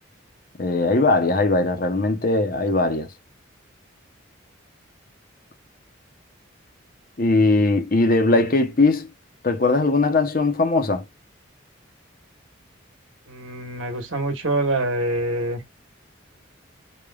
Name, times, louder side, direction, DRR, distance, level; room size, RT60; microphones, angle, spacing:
voice 1, 0.6-3.1 7.2-9.1 9.4-11.0, left 3 dB, 45° left, 0.8 m, -20 dB
voice 2, 13.3-15.6, right 2 dB, 85° right, 1.5 m, -25 dB
5.0 x 2.4 x 2.3 m
head